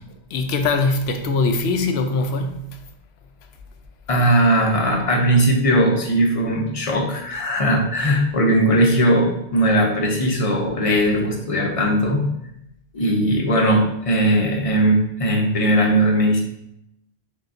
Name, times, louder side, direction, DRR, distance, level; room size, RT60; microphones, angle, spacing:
voice 1, 0.3-2.8, left 3 dB, 75° left, 0.8 m, -22 dB
voice 2, 4.1-12.3 12.9-16.4, right 1 dB, 40° left, 0.6 m, -19 dB
6.3 x 2.3 x 2.5 m
omnidirectional pair, 1.1 m